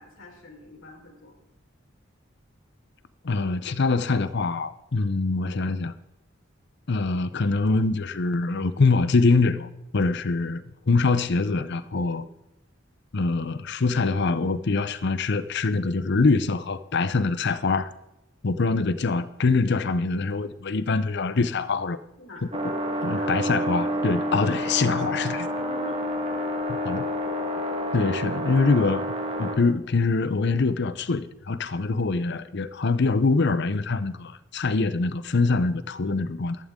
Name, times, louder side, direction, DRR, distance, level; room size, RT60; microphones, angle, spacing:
voice 1, 0.0-1.3 22.2-22.4 23.1-23.8 25.6-26.5 26.8-27.2, left 2 dB, 85° left, 4.3 m, -44 dB
voice 2, 3.2-5.9 6.9-12.3 13.1-17.9 18.4-22.0 23.0-25.5 26.7-27.0 27.9-29.1 29.4-36.6, left 3 dB, 60° left, 0.7 m, -24 dB
sound 1, 22.5-29.6, equal, 30° right, 1.6 m, -29 dB
14.5 x 12.5 x 3.7 m
head